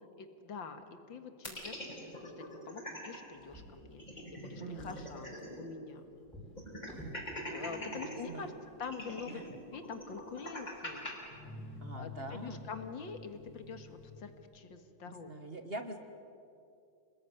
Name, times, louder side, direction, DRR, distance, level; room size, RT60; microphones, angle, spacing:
voice 1, 0.2-6.0 7.5-8.5 8.8-9.4 9.7-11.2 12.0-15.3, left 5 dB, 80° left, 8 dB, 2.5 m, -45 dB
sound 1, 1.4-3.2 3.5-3.6 3.9-5.7 6.0-6.1 6.6-8.2 8.8-11.1, left 1 dB, 20° left, 5.2 m, -43 dB
Drawer open or close, 3.3-4.3 4.6-7.3 8.1-8.3 8.7-8.8, right 1 dB, ahead, 5.5 m, -52 dB
voice 2, 4.6-5.1 7.9-8.5 9.3-9.5 11.8-12.7 15.1-16.0, right 2 dB, 35° right, 7 dB, 1.5 m, -44 dB
sound 2, 7.6-14.5, left 3 dB, 80° right, 6.9 m, -51 dB
28.0 x 20.0 x 9.9 m, 2.7 s
omnidirectional pair, 2.1 m